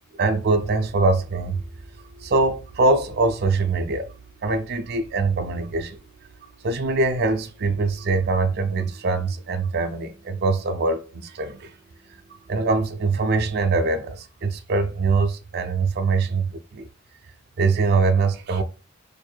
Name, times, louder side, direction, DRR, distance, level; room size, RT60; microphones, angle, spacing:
voice 1, 0.2-1.6 2.2-4.1 4.4-6.0 6.6-11.7 12.5-16.9 17.6-18.6, right 3 dB, 55° right, 0.4 m, -23 dB
4.4 x 2.6 x 2.2 m
head